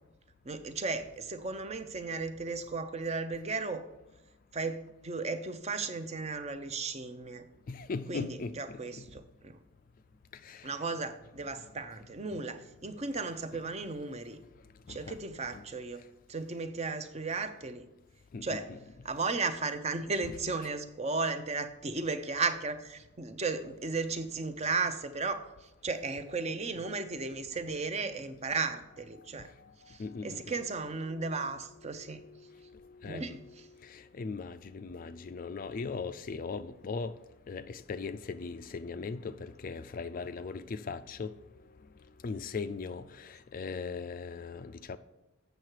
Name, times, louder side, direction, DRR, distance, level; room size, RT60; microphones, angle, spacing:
voice 1, 0.4-3.9 4.5-7.5 8.1-9.6 10.6-14.4 14.9-16.0 16.3-17.9 18.4-18.7 19.0-29.5 29.9-32.2 33.1-33.6, right 4 dB, 30° right, 0.6 m, -35 dB
voice 2, 7.7-9.1 10.3-10.8 12.3-12.4 13.5-13.6 14.9-15.2 15.5-15.7 18.3-18.9 20.2-20.4 28.5-37.2 37.5-41.4 42.2-45.0, left 4 dB, 40° left, 0.3 m, -40 dB
8.0 x 6.6 x 4.6 m
head